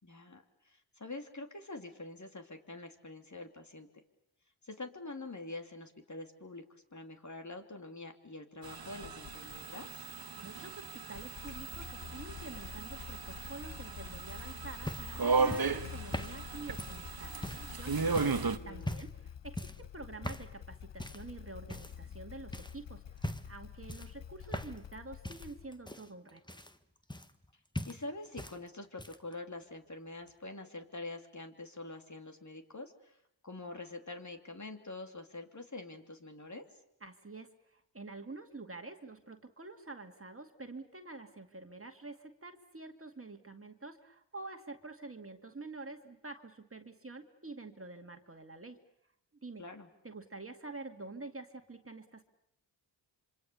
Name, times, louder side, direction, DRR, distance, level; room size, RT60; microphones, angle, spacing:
voice 1, 0.0-3.9 4.6-6.6 6.9-9.9 18.5-19.0 27.8-33.2 33.4-36.6 49.6-49.9, left 2 dB, 35° left, 5 dB, 3.1 m, -45 dB
sound 1, 8.6-18.6, right 4 dB, 50° right, 1.4 m, -36 dB
Motorcycle / Engine starting, 9.0-9.7 11.0-25.9, left 9 dB, 65° left, 1.0 m, -48 dB
voice 2, 10.4-17.9 18.6-26.6 37.0-48.8 49.4-49.6 50.0-52.2, right 3 dB, 25° right, 5 dB, 2.2 m, -48 dB
sound 2, 14.3-17.7 18.2-18.4 18.8-19.2 19.6-19.9 20.2-20.5 21.0-21.3 21.7-22.2 22.5-22.8 23.2-23.6 23.9-24.9 25.2-27.5 27.7-28.6 28.8-29.3 30.3-30.4, left 1 dB, 10° left, 1.4 m, -41 dB
26.5 x 25.0 x 6.9 m, 0.77 s
cardioid pair, 45°, 47 cm